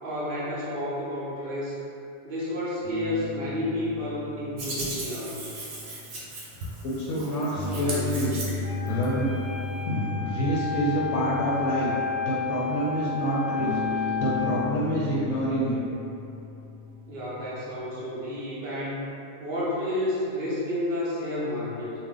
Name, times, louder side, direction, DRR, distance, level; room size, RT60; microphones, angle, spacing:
voice 1, 0.0-1.8 2.2-5.5 17.1-19.1 19.4-21.9, left 1 dB, 60° right, -7 dB, 0.6 m, -31 dB
sound 1, 2.8-6.7 7.5-12.6 13.6-17.8, left 3 dB, 30° left, 0.7 m, -36 dB
Hands, 4.6-9.0, right 2 dB, 80° right, 1.0 m, -37 dB
voice 2, 6.8-8.4 8.8-9.3 9.8-11.9 12.2-15.8, equal, 75° left, -7 dB, 0.9 m, -27 dB
Wind instrument woodwind instrument, 8.6-14.6, left 5 dB, 15° right, 0.8 m, -32 dB
2.5 x 2.0 x 3.7 m, 2.7 s
omnidirectional pair, 1.3 m